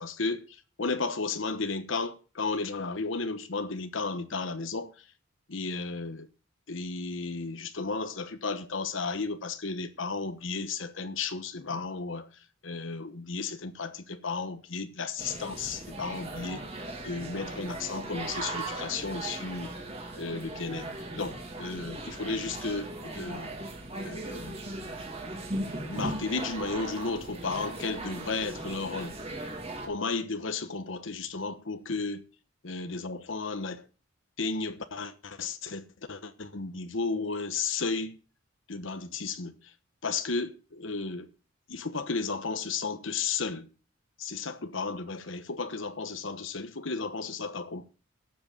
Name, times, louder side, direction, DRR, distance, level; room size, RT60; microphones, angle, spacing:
voice 1, 0.0-5.0 5.5-6.3 6.7-19.7 20.2-20.9 21.1-23.5 24.0-24.6 25.6-29.1 29.8-32.2 32.6-33.9 34.4-38.2 38.7-39.7 40.0-41.3 41.7-43.7 44.2-47.8, left 4 dB, 70° left, 1.1 m, -34 dB
sound 1, 15.2-29.9, right 2 dB, 30° right, 3.0 m, -38 dB
12.5 x 7.8 x 7.3 m
head